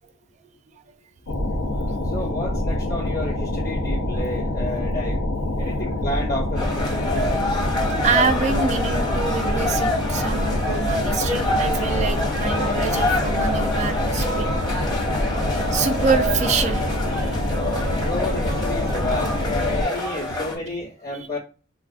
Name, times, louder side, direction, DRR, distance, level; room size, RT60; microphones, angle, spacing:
sound 1, 1.3-19.9, left 1 dB, 85° left, 0.6 m, -25 dB
voice 1, 2.0-7.5 18.0-21.4, left 1 dB, 50° left, 0.8 m, -31 dB
sound 2, 6.6-20.6, left 1 dB, 20° left, 0.9 m, -26 dB
voice 2, 8.0-14.8 15.7-17.5, right 5 dB, 35° right, 0.3 m, -26 dB
3.5 x 2.3 x 2.4 m
head